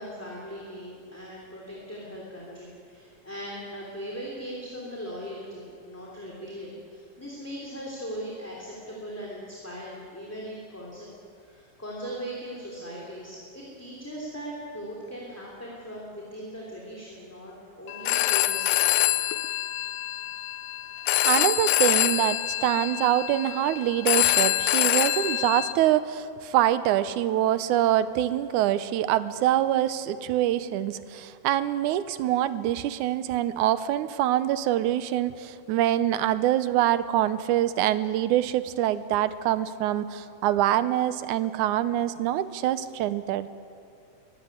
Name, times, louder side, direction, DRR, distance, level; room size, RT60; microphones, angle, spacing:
voice 1, 0.0-11.1 11.4-19.0, equal, 5° left, -4 dB, 3.1 m, -39 dB
Telephone, 17.9-25.7, left 15 dB, 75° left, 1.8 m, -25 dB
voice 2, 21.3-43.5, right 12 dB, 90° right, 14 dB, 2.2 m, -25 dB
22.5 x 16.0 x 9.4 m, 2.4 s
omnidirectional pair, 3.4 m